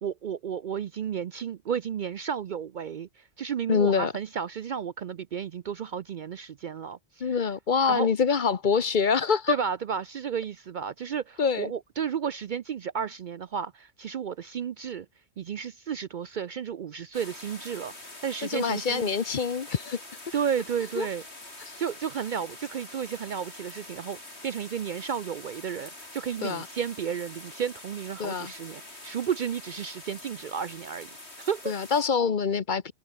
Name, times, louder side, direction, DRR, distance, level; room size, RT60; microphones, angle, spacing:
voice 1, 0.0-7.4 7.9-8.1 9.5-15.1 15.4-19.1 20.3-21.2 21.8-31.1 31.4-31.7, right 7 dB, 55° right, 0.6 m, -32 dB
voice 2, 3.7-4.1 7.2-9.6 11.4-11.7 18.5-20.0 21.0-21.1 26.4-26.7 28.2-28.5 31.7-32.9, left 6 dB, 45° left, 1.0 m, -25 dB
sound 1, 17.1-32.0, left 2 dB, 70° left, 5.4 m, -45 dB
open air
omnidirectional pair, 1.2 m